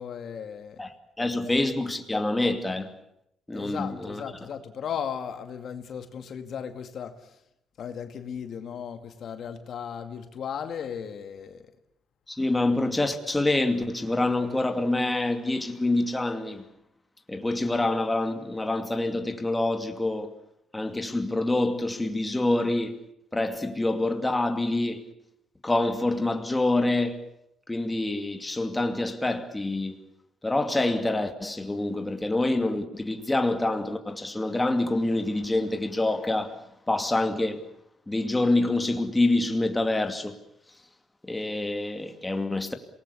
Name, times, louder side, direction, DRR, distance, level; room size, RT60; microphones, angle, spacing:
voice 1, 0.0-0.8 1.4-1.5 3.5-7.2 7.8-11.6, left 7 dB, 65° left, 2.1 m, -36 dB
voice 2, 0.8-2.9 3.5-4.2 12.3-16.6 17.3-20.3 20.7-23.0 23.3-25.0 25.6-27.2 27.7-30.0 30.4-36.6 36.9-37.6 38.1-40.4 41.2-42.7, left 2 dB, 15° left, 2.5 m, -26 dB
27.0 x 19.5 x 8.5 m
cardioid pair, 90°, 0 cm